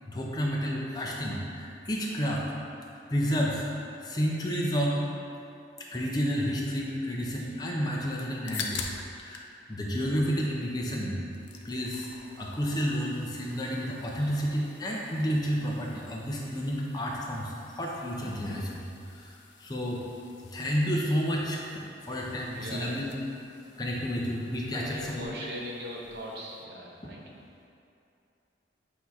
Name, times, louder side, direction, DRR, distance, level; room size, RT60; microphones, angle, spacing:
voice 1, 0.1-2.4 3.1-3.6 4.0-5.0 5.9-8.9 9.2-9.4 9.7-11.2 11.6-12.1 12.4-18.8 19.1-19.3 19.6-20.0 20.5-23.1 23.8-25.3, equal, 20° left, -3 dB, 0.6 m, -30 dB
sound 1, 8.5-9.5 9.8-10.8 11.1-26.7, left 5 dB, 80° left, 0.5 m, -47 dB
voice 2, 22.5-23.0 24.7-27.3, equal, 65° right, -2 dB, 0.8 m, -41 dB
8.2 x 2.8 x 4.6 m, 2.6 s
head